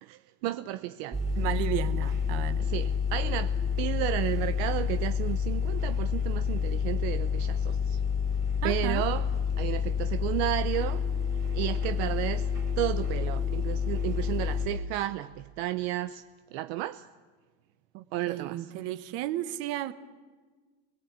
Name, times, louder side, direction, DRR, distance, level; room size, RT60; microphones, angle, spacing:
voice 1, 0.0-1.2 2.6-8.0 8.6-9.3 9.6-11.1 11.5-12.5 12.8-16.2 16.5-17.1 18.1-18.7, right 14 dB, 65° right, 0.8 m, -32 dB
sound 1, 1.1-14.7, left 6 dB, 10° right, 4.0 m, -29 dB
voice 2, 1.4-2.6 8.6-9.1 17.9-19.9, right 14 dB, 45° right, 1.2 m, -33 dB
29.0 x 20.5 x 8.3 m
cardioid pair, 175°, 33 cm